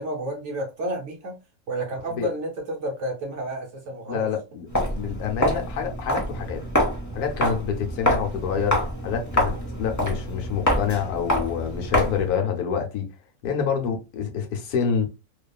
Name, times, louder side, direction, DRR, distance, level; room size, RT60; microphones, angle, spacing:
voice 1, 0.0-1.4 1.7-4.3, right 1 dB, 60° right, 0.9 m, -30 dB
voice 2, 4.1-6.6 7.1-13.1 13.4-15.1, left 7 dB, 80° left, 1.1 m, -27 dB
Walk footsteps, 4.7-12.3, equal, 30° left, 0.3 m, -26 dB
2.7 x 2.3 x 2.2 m
omnidirectional pair, 1.6 m